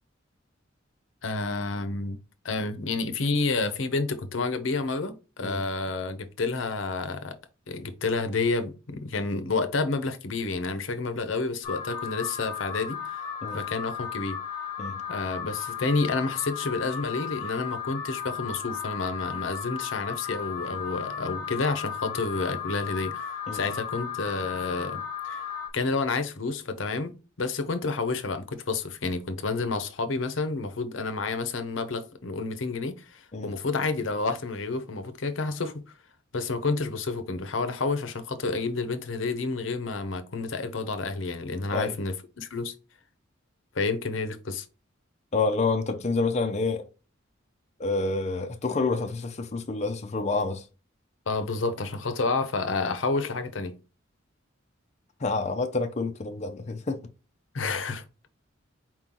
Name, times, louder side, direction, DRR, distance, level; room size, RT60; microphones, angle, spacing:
voice 1, 1.2-2.2 2.4-7.4 7.7-13.2 13.5-14.4 15.1-25.4 25.7-27.1 27.4-35.8 36.3-42.7 43.7-44.7 51.3-53.7 57.5-58.0, left 3 dB, 85° left, 0.8 m, -29 dB
Alarm, 11.6-25.7, left 7 dB, 20° left, 1.1 m, -35 dB
voice 2, 45.3-46.9 47.8-50.6 55.2-57.0, left 3 dB, 35° left, 0.5 m, -28 dB
4.5 x 3.8 x 2.9 m
head